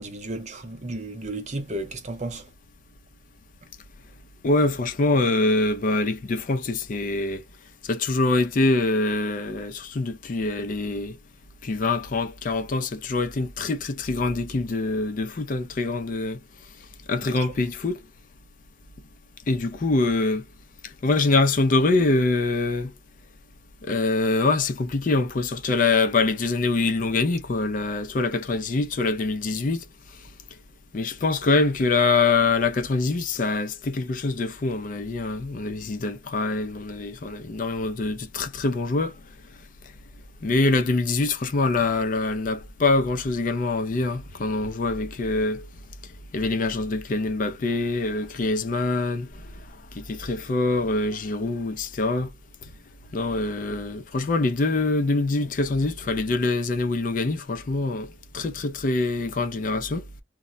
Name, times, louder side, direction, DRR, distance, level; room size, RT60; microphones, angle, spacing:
voice 1, 0.0-2.4, right 1 dB, 40° right, 0.6 m, -33 dB
voice 2, 4.4-7.4 7.9-11.2 11.6-16.4 17.1-18.0 19.5-20.4 21.0-22.9 23.8-29.8 30.9-39.1 40.4-45.6 46.3-49.3 49.9-52.3 53.1-58.1 58.3-60.1, left 3 dB, 45° left, 0.4 m, -24 dB
2.2 x 2.0 x 3.7 m
head